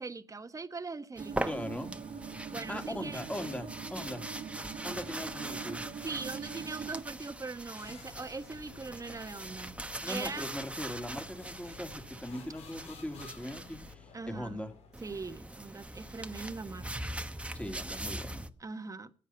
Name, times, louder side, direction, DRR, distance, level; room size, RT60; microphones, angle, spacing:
voice 1, 0.0-1.5 2.5-3.2 6.0-9.7 10.1-10.5 14.1-14.6 15.0-17.1 18.6-19.3, right 4 dB, 30° right, 1.3 m, -41 dB
sound 1, 1.2-13.9 14.9-18.5, right 1 dB, 10° right, 1.2 m, -42 dB
sound 2, 1.2-7.0, right 6 dB, 60° right, 1.5 m, -43 dB
voice 2, 1.5-2.0 2.7-4.3 4.8-5.8 10.0-14.7 17.5-18.4, equal, 10° left, 2.5 m, -40 dB
sound 3, 7.8-15.2, left 6 dB, 75° left, 2.6 m, -54 dB
15.5 x 8.4 x 5.8 m
supercardioid pair, 60°, 11 cm